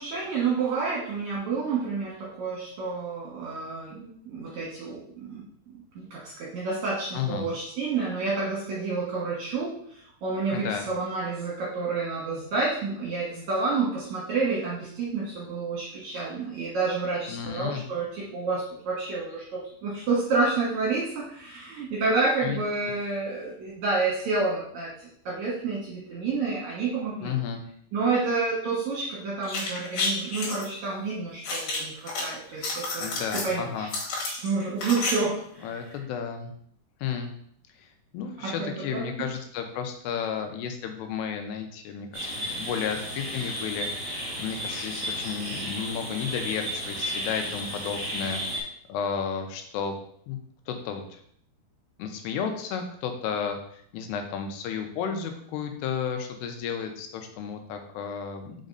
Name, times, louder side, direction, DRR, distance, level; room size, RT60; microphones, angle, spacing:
voice 1, 0.0-5.4 6.0-27.3 27.9-33.9 34.4-35.9 38.4-39.0, right 4 dB, 60° right, -5 dB, 2.1 m, -29 dB
voice 2, 7.1-7.5 10.5-10.9 17.3-17.8 22.4-22.6 27.2-27.6 33.0-33.9 35.6-36.5 37.0-37.3 37.8-37.9 38.1-50.0 50.3-50.4 50.7-51.2 52.0-58.6, left 7 dB, 90° left, 5 dB, 2.8 m, -33 dB
sound 1, 29.4-30.6 31.4-32.2 32.5-33.5 33.9-35.1 35.4-35.5, left 3 dB, 60° left, 2.8 m, -30 dB
sound 2, 42.1-48.6, equal, 25° right, 2.2 m, -33 dB
5.2 x 5.2 x 3.9 m, 0.66 s
omnidirectional pair, 4.7 m